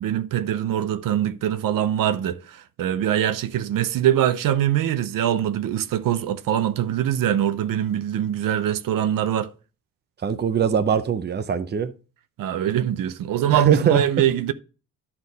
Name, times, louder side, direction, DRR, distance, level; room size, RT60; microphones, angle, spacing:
voice 1, 0.0-9.5 12.4-14.5, right 11 dB, 80° right, 0.7 m, -23 dB
voice 2, 10.2-11.9 13.5-14.3, right 7 dB, 30° right, 0.7 m, -22 dB
11.5 x 4.4 x 4.0 m
cardioid pair, 135°, 33 cm